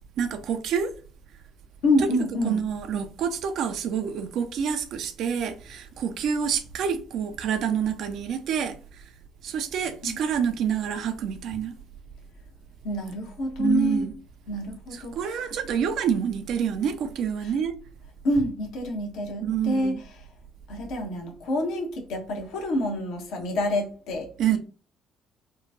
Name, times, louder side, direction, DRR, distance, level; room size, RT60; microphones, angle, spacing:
voice 1, 0.2-0.9 2.1-8.8 9.4-11.7 13.6-14.1 14.9-17.8 19.4-20.0 24.4-24.6, right 8 dB, 65° right, 0.5 m, -27 dB
voice 2, 1.8-2.6 10.0-10.2 12.8-14.1 14.5-15.5 17.4-17.5 18.2-20.0 20.7-24.6, left 1 dB, 70° left, 1.0 m, -27 dB
3.8 x 2.3 x 2.7 m
hypercardioid pair, 55°, 0 cm